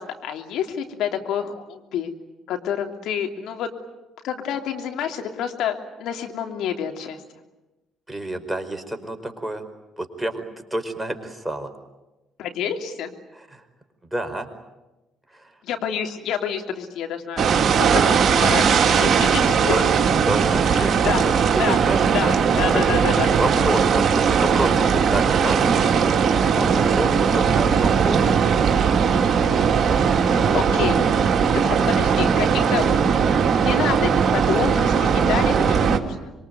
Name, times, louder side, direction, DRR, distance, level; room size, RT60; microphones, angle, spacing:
voice 1, 0.0-2.1 2.5-3.7 4.2-7.2 12.4-13.1 15.6-17.4 17.8-19.8 20.7-21.3 21.6-21.8 22.1-23.3 30.3-31.0 31.5-32.9 33.6-36.3, left 9 dB, 70° left, 4 dB, 3.1 m, -28 dB
voice 2, 8.1-9.7 10.0-10.4 10.7-11.7 13.3-13.6 14.1-14.5 15.3-15.6 18.8-19.9 20.2-22.0 22.7-22.8 23.2-26.1 26.4-28.2 30.5-30.6 31.7-31.9, right 1 dB, 5° right, 6 dB, 4.9 m, -29 dB
sound 1, 17.4-36.0, right 6 dB, 50° right, 2.9 m, -19 dB
26.5 x 23.5 x 9.5 m, 1.0 s
hypercardioid pair, 55°, 0 cm